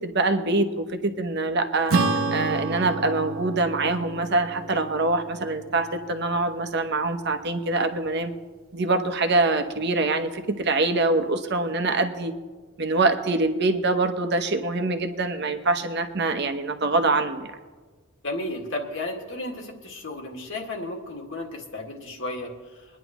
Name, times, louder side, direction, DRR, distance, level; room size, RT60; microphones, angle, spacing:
voice 1, 0.0-1.9 2.3-8.3 8.7-12.3 12.8-17.5, right 2 dB, 55° right, 7 dB, 1.0 m, -24 dB
Acoustic guitar / Strum, 1.9-6.6, right 3 dB, 80° right, 1.0 m, -29 dB
voice 2, 18.2-22.5, left 2 dB, 65° left, 1 dB, 2.0 m, -33 dB
23.0 x 10.5 x 3.1 m, 1.3 s
head